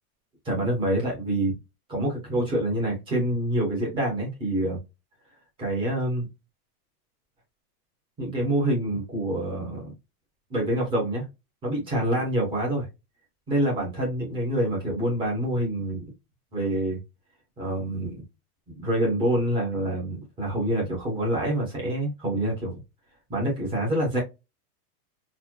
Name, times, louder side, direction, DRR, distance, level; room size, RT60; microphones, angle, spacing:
voice 1, 0.4-1.5 1.9-4.8 5.6-6.3 8.2-9.9 10.5-11.3 11.6-12.9 13.5-16.0 16.5-17.0 17.6-18.2 18.8-22.7 23.3-24.2, right 1 dB, 10° right, 0.9 m, -26 dB
4.1 x 2.1 x 2.9 m
supercardioid pair, 175°, 45 cm